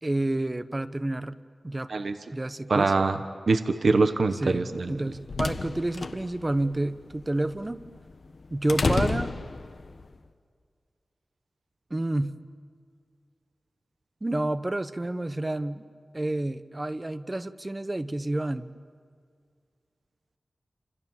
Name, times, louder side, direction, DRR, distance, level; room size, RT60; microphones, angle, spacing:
voice 1, 0.0-1.4 1.6-1.9 2.3-2.9 4.3-7.8 8.5-9.3 11.9-12.4 14.2-15.8 16.1-18.7, right 1 dB, 30° right, 11 dB, 1.1 m, -29 dB
voice 2, 2.7-3.2 3.5-5.0, right 3 dB, 75° right, 8 dB, 1.2 m, -23 dB
sound 1, 4.8-10.1, left 3 dB, 70° left, 1.2 m, -31 dB
29.5 x 27.0 x 7.4 m, 2.1 s
wide cardioid pair, 65°, 0 cm